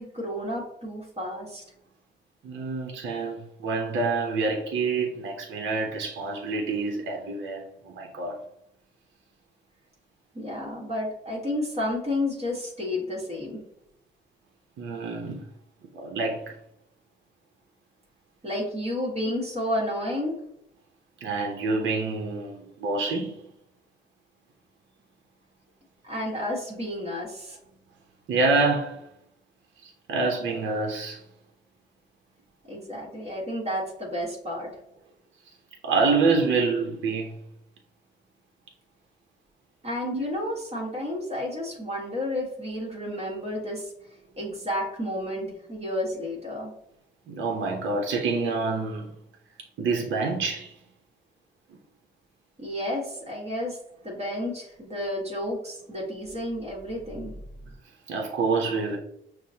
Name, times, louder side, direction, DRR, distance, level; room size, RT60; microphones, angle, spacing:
voice 1, 0.0-1.6 10.3-13.6 18.4-20.3 26.0-27.6 32.7-34.7 39.8-43.9 44.4-46.7 52.6-53.8 54.0-57.4, left 1 dB, 30° right, 1.3 m, -31 dB
voice 2, 2.4-8.3 14.8-15.4 15.9-16.5 19.2-19.3 21.2-23.4 28.3-29.0 29.8-31.2 35.8-37.4 40.1-40.2 47.3-49.1 49.8-50.7 58.1-59.0, right 3 dB, 70° right, 0.8 m, -27 dB
6.1 x 2.1 x 2.7 m
cardioid pair, 90°, 20 cm